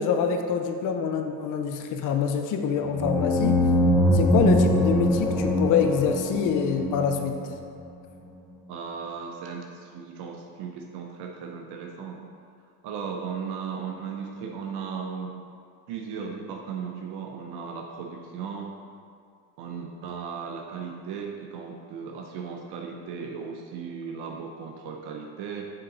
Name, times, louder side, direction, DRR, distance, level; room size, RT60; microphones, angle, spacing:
voice 1, 0.0-3.6 4.1-7.4, left 6 dB, 50° left, 5 dB, 0.6 m, -25 dB
sound 1, 2.9-7.5, left 1 dB, 5° left, 0.4 m, -23 dB
voice 2, 8.7-12.2 12.8-15.3 15.9-18.8 19.6-25.7, right 6 dB, 70° right, 1 dB, 0.7 m, -36 dB
6.7 x 3.8 x 4.1 m, 2.2 s
cardioid pair, 110°, 42 cm